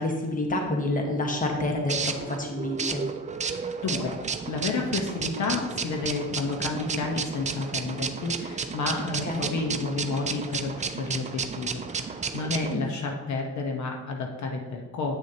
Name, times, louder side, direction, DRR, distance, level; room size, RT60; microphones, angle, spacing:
voice 1, 0.0-3.0 9.2-9.5 12.7-12.9, left 1 dB, 25° left, 2 dB, 1.3 m, -28 dB
sound 1, 1.1-12.7, right 5 dB, 25° right, 0.5 m, -33 dB
voice 2, 3.5-15.2, left 3 dB, 70° left, 2 dB, 1.0 m, -31 dB
8.4 x 6.4 x 2.8 m, 1.2 s
cardioid pair, 90°, 30 cm